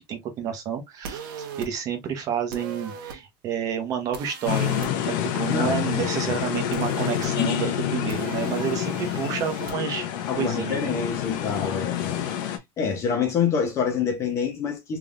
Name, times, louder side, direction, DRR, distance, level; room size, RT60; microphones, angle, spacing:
voice 1, 0.0-10.1 10.3-10.9, right 8 dB, 30° right, 1.0 m, -30 dB
sound 1, 1.0-1.7 2.5-3.2 4.1-4.9 6.7-7.3 8.1-9.7, right 6 dB, 75° right, 1.3 m, -39 dB
sound 2, 4.5-12.6, left 10 dB, 65° left, 0.9 m, -28 dB
voice 2, 5.5-5.8 6.1-6.2 10.3-12.3 12.8-15.0, left 6 dB, 25° left, 0.8 m, -26 dB
3.6 x 3.3 x 2.5 m
cardioid pair, 180°, 12 cm